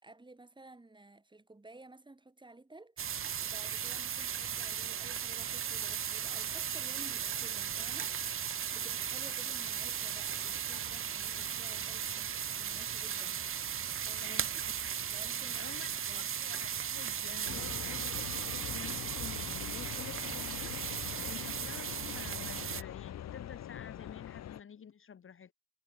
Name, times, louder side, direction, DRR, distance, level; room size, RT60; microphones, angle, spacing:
voice 1, 0.0-3.0 3.4-8.1 8.5-13.4 14.1-14.4 15.1-16.3, right 2 dB, 15° right, 4.2 m, -55 dB
sound 1, 3.0-22.8, right 8 dB, 45° right, 1.1 m, -36 dB
voice 2, 14.2-14.9 15.6-25.5, left 7 dB, 45° left, 1.6 m, -50 dB
sound 2, 17.4-24.6, left 11 dB, 60° left, 1.1 m, -43 dB
cardioid pair, 90°, 30 cm